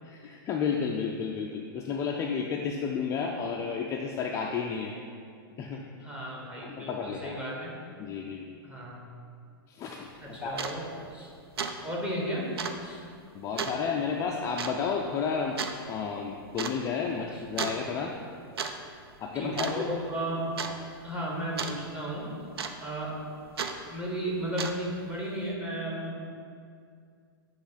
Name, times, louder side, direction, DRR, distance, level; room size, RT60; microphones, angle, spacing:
voice 1, 0.0-4.9 5.6-5.8 6.6-7.4 8.0-8.5 9.7-10.6 13.3-15.6 15.8-18.1 19.2-19.9 20.7-20.8, left 6 dB, 25° left, 0 dB, 0.3 m, -32 dB
voice 2, 6.0-7.7 8.6-9.0 10.2-10.8 11.1-11.3 11.8-12.5 12.8-13.0 17.3-17.4 19.3-20.6 21.0-22.3 22.8-23.2 23.9-26.2, right 1 dB, 10° right, -4 dB, 1.2 m, -34 dB
sound 1, 10.1-10.2 10.5-10.8 11.1-11.3 11.6-11.8 12.0-12.1 12.6-12.8 13.6-13.8 14.6-14.8 15.6-15.8 16.6-16.8 17.6-17.8 18.4-18.8 19.0-19.3 19.6-20.1 20.6-20.7 21.6-21.8 22.6-23.0 23.6-23.8 24.4-24.9, right 6 dB, 85° right, 0.5 m, -33 dB
8.0 x 3.0 x 4.1 m, 2.3 s
hypercardioid pair, 125°, 13 cm